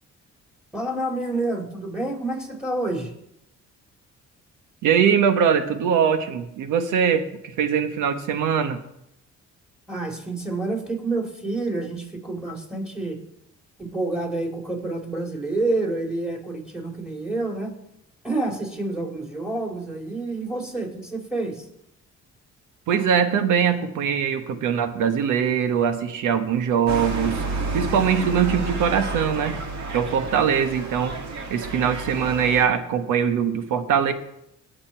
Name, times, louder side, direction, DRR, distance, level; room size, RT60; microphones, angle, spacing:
voice 1, 0.7-3.1 9.9-13.2 13.8-17.8 18.2-21.7, right 2 dB, 5° right, 1 dB, 3.5 m, -28 dB
voice 2, 4.8-8.8 22.9-27.4 27.7-29.6 29.9-31.2 31.5-34.1, right 7 dB, 90° right, 9 dB, 1.3 m, -22 dB
sound 1, 26.9-32.7, right 3 dB, 65° right, 2.2 m, -30 dB
20.0 x 6.9 x 4.5 m, 0.80 s
cardioid pair, 90°, 30 cm